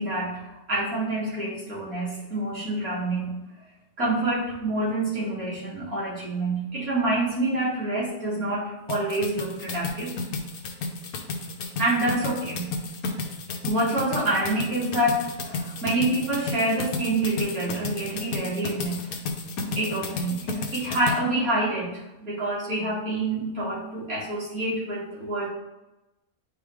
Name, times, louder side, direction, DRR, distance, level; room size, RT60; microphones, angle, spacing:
voice 1, 0.0-3.3 4.0-10.1 11.8-12.7 13.6-19.1 19.8-25.5, right 1 dB, 80° right, -9 dB, 2.8 m, -27 dB
sound 1, 8.9-21.2, left 3 dB, 90° left, 1.3 m, -32 dB
9.7 x 3.7 x 3.2 m, 0.98 s
omnidirectional pair, 1.5 m